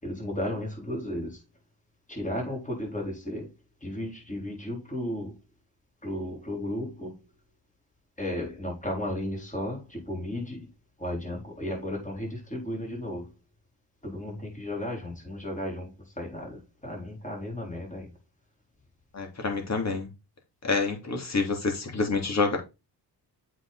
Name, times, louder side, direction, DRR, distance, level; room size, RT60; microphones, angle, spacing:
voice 1, 0.0-1.4 2.1-3.5 3.8-5.4 6.0-7.2 8.2-10.7 11.0-13.3 14.0-18.1, left 1 dB, 20° left, 4.4 m, -34 dB
voice 2, 19.1-20.1 20.6-22.6, left 4 dB, 40° left, 3.2 m, -27 dB
7.7 x 5.8 x 4.2 m
cardioid pair, 110°, 42 cm